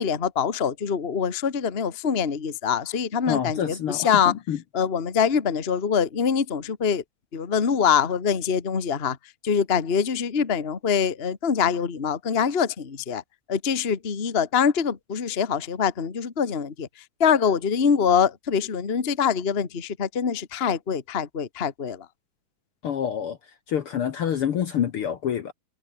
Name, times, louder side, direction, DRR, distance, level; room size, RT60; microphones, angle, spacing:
voice 1, 0.0-4.3 4.7-7.0 7.3-9.2 9.4-13.2 13.5-16.9 17.2-22.0, left 7 dB, 30° left, 1.3 m, -24 dB
voice 2, 3.3-4.6 22.8-23.4 23.7-25.5, left 9 dB, 55° left, 1.7 m, -27 dB
omnidirectional pair, 3.5 m